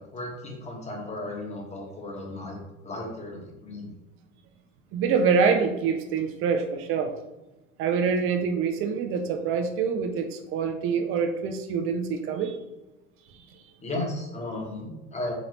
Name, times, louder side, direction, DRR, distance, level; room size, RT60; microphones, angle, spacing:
voice 1, 0.0-2.6 2.8-3.9 13.8-15.3, left 2 dB, 20° left, -1 dB, 1.1 m, -35 dB
voice 2, 4.9-7.1 7.8-12.6, right 5 dB, 35° right, 6 dB, 0.5 m, -25 dB
3.7 x 3.0 x 3.1 m, 1.0 s
figure-of-eight pair, 70°, 36 cm